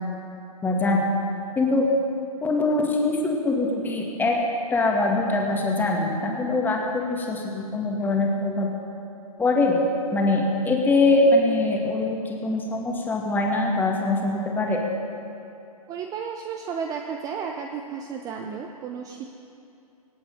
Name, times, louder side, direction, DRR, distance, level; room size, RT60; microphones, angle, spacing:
voice 1, 0.6-1.0 1.6-1.8 2.4-4.3 4.7-8.7 9.4-9.8 10.1-14.8, left 2 dB, 10° left, 0 dB, 2.0 m, -23 dB
voice 2, 15.9-19.2, right 6 dB, 20° right, 3 dB, 0.7 m, -33 dB
25.0 x 8.4 x 5.4 m, 2.7 s
figure-of-eight pair, 120°, 19 cm